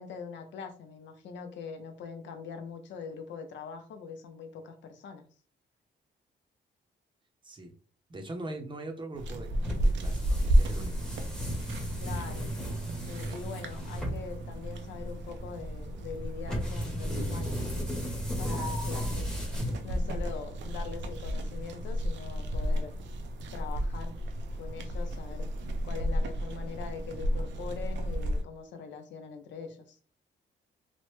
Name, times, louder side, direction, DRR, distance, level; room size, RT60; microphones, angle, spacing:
voice 1, 0.0-5.2 12.0-12.5 13.1-19.2 19.8-22.9 23.5-24.1 24.5-25.5 25.8-30.0, left 5 dB, 85° left, 6 dB, 0.6 m, -43 dB
voice 2, 7.4-7.7 8.1-11.1, right 2 dB, 25° right, 3 dB, 0.6 m, -41 dB
sound 1, 9.1-28.4, equal, 80° right, 0.5 m, -33 dB
sound 2, 9.6-20.2, equal, 5° left, 0.8 m, -36 dB
3.0 x 2.1 x 3.0 m, 0.41 s
cardioid pair, 120°, 18 cm